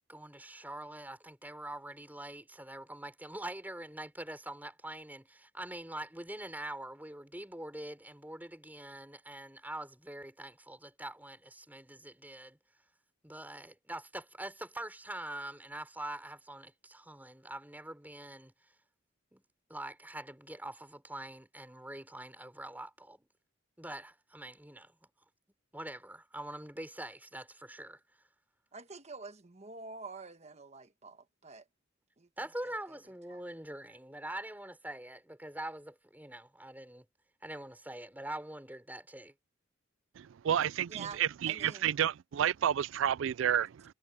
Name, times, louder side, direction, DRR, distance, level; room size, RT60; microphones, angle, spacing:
voice 1, 0.1-12.6 13.2-18.5 19.3-19.4 19.7-23.3 23.8-25.0 25.7-28.0 32.4-37.0 37.4-39.3, right 1 dB, 10° right, 4.8 m, -44 dB
voice 2, 28.7-31.6 32.2-32.3 33.3-33.4 40.9-41.9 43.6-43.7, right 4 dB, 30° right, 1.3 m, -47 dB
voice 3, 40.2-43.8, right 9 dB, 65° right, 0.3 m, -30 dB
head